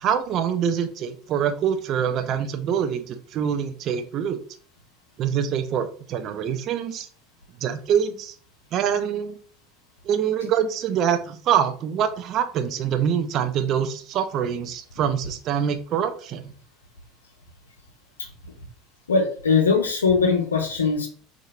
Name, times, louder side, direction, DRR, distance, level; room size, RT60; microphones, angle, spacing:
voice 1, 0.0-4.4 5.2-7.1 7.6-8.4 8.7-9.4 10.0-16.5, right 8 dB, 45° right, 9 dB, 0.3 m, -25 dB
voice 2, 19.1-21.1, left 5 dB, 80° left, 3 dB, 0.5 m, -20 dB
2.7 x 2.4 x 2.3 m, 0.43 s
figure-of-eight pair, 70°, 0 cm